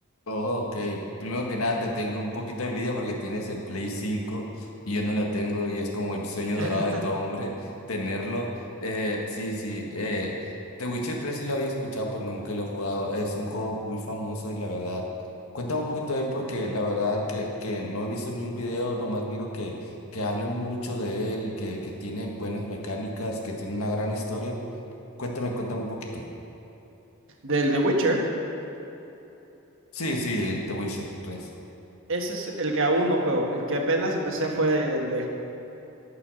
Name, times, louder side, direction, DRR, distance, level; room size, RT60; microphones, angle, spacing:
voice 1, 0.3-8.5 8.8-10.3 10.8-15.0 15.5-24.6 25.2-26.2 29.9-31.5, left 1 dB, 75° left, 0 dB, 1.6 m, -30 dB
voice 2, 6.5-7.0 27.4-28.2 32.1-35.3, right 1 dB, 60° right, 1 dB, 1.4 m, -25 dB
13.5 x 5.6 x 6.5 m, 3.0 s
head